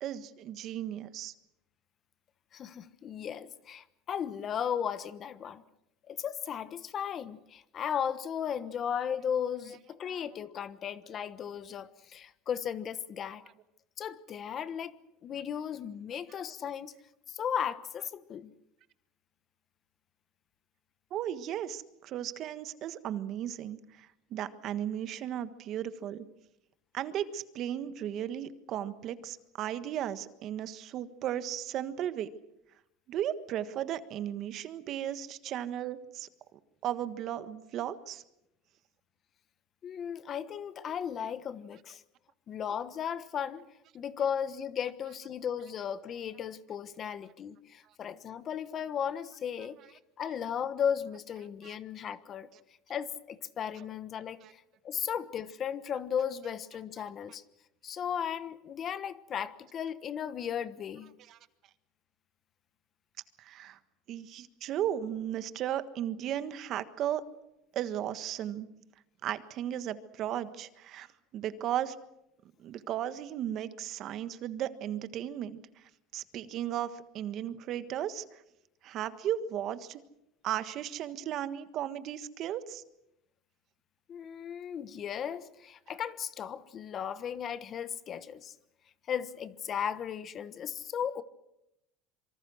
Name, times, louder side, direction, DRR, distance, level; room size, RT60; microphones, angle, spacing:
voice 1, 0.0-1.3 10.1-10.2 21.1-26.2 26.9-32.3 33.1-36.3 36.8-38.2 51.6-51.8 54.4-54.5 61.3-61.4 63.4-63.8 64.1-67.3 67.7-68.7 69.2-71.1 71.3-72.0 72.6-75.6 76.1-78.2 78.8-80.0 80.4-82.8, right 11 dB, 50° right, 1.5 m, -35 dB
voice 2, 2.5-5.6 6.1-13.4 14.0-16.9 17.3-18.5 39.8-42.0 42.5-43.7 43.9-52.5 52.9-57.4 57.8-61.1 84.1-88.5 89.1-91.2, left 8 dB, 35° left, 1.2 m, -36 dB
26.0 x 24.0 x 6.4 m
supercardioid pair, 125°, 0 cm